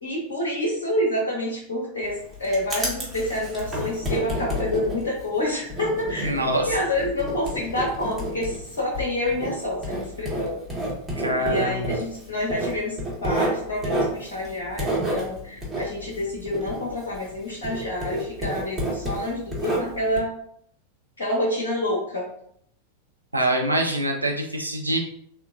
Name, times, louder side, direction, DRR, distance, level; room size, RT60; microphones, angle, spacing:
voice 1, 0.0-10.6 11.4-13.0 13.2-20.3 21.2-22.3, left 1 dB, 65° left, -3 dB, 0.7 m, -28 dB
Writing, 2.0-17.4 17.6-20.2, right 1 dB, 5° right, 1.1 m, -30 dB
voice 2, 6.2-6.7 11.2-11.9 23.3-25.0, right 1 dB, 85° right, 1 dB, 0.5 m, -24 dB
3.7 x 2.1 x 2.5 m, 0.68 s
figure-of-eight pair, 90°, 0 cm